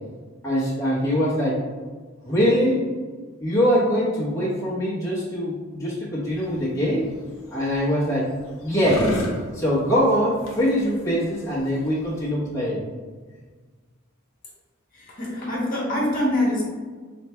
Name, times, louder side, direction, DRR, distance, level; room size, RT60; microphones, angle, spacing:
voice 1, 0.4-1.6 2.2-2.8 3.4-7.1 7.5-8.3 8.6-9.2 9.5-12.8, equal, 15° left, -10 dB, 1.0 m, -23 dB
sound 1, 6.2-12.3, left 1 dB, 80° left, 0.8 m, -34 dB
voice 2, 14.9-16.6, left 1 dB, 40° left, -5 dB, 1.0 m, -24 dB
3.3 x 2.4 x 4.3 m, 1.5 s
head